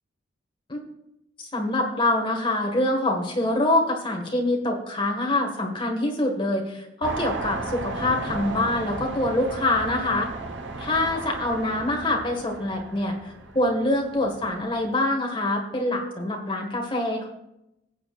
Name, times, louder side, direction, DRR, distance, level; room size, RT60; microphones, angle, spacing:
voice 1, 1.4-10.3 10.8-17.3, left 1 dB, 25° left, 1 dB, 1.7 m, -25 dB
sound 1, 7.0-14.9, right 2 dB, 75° right, 1.1 m, -35 dB
18.5 x 8.2 x 2.5 m, 0.86 s
head